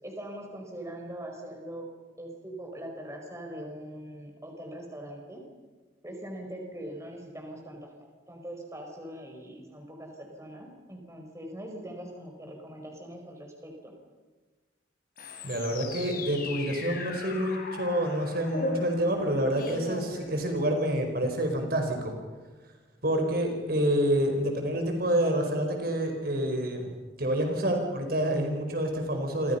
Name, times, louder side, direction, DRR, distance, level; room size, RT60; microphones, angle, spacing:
voice 1, 0.0-1.9 2.2-5.4 6.0-13.9, right 1 dB, 15° right, 2 dB, 5.1 m, -42 dB
sound 1, 15.2-20.8, left 2 dB, 50° left, 4.4 m, -38 dB
voice 2, 15.4-22.2 23.0-26.9 27.2-29.6, right 1 dB, 50° right, 4 dB, 4.9 m, -28 dB
30.0 x 26.0 x 5.8 m, 1.3 s
head